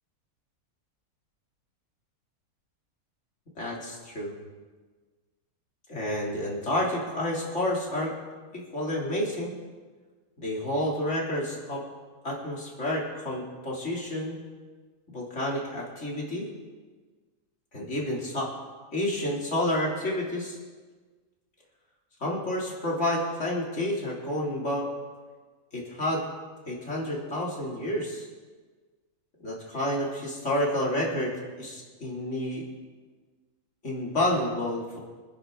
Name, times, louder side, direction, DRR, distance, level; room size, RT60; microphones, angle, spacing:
voice 1, 3.6-4.3 5.9-8.1 8.5-9.5 10.4-11.8 12.2-14.4 15.1-16.5 17.7-18.5 18.9-20.6 22.2-24.9 25.7-26.2 26.7-28.3 29.4-32.6 33.8-35.0, left 1 dB, 50° left, -3 dB, 3.4 m, -29 dB
26.5 x 9.8 x 3.9 m, 1.4 s
omnidirectional pair, 1.6 m